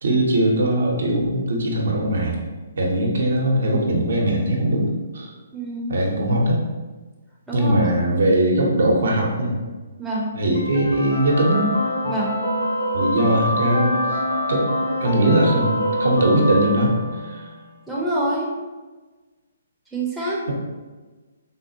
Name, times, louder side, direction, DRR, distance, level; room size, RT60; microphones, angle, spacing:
voice 1, 0.0-2.4 2.8-5.3 5.9-6.6 7.5-9.6 10.3-11.7 12.0-12.1 12.9-14.2 14.5-16.9 17.2-17.4, right 1 dB, 70° right, -1 dB, 0.7 m, -20 dB
voice 2, 5.5-5.9 7.5-7.8 10.0-10.3 12.1-12.3 17.9-18.5 19.9-20.4, right 1 dB, 5° right, -6 dB, 0.6 m, -25 dB
sound 1, 10.5-17.5, equal, 80° left, 1.1 m, -25 dB
3.5 x 2.3 x 2.7 m, 1.3 s
figure-of-eight pair, 135°, 0 cm